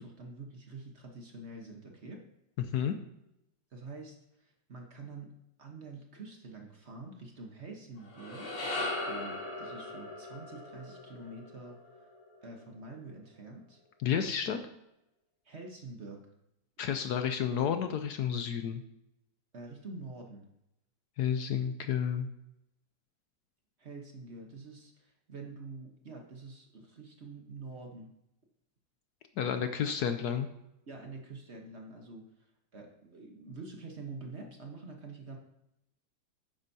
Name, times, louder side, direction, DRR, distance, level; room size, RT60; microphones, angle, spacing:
voice 1, 0.0-2.2 3.7-5.3 5.6-11.8 12.4-13.8 15.4-16.2 19.5-20.5 23.8-28.1 30.9-32.3 32.7-35.4, right 3 dB, 40° right, 2 dB, 1.2 m, -46 dB
sound 1, 8.0-12.4, left 2 dB, 55° left, 2.7 m, -39 dB
voice 2, 14.0-14.6 16.8-18.8 21.2-22.3 29.4-30.5, left 8 dB, 70° left, 8 dB, 1.1 m, -31 dB
11.5 x 9.0 x 2.8 m, 0.84 s
omnidirectional pair, 2.0 m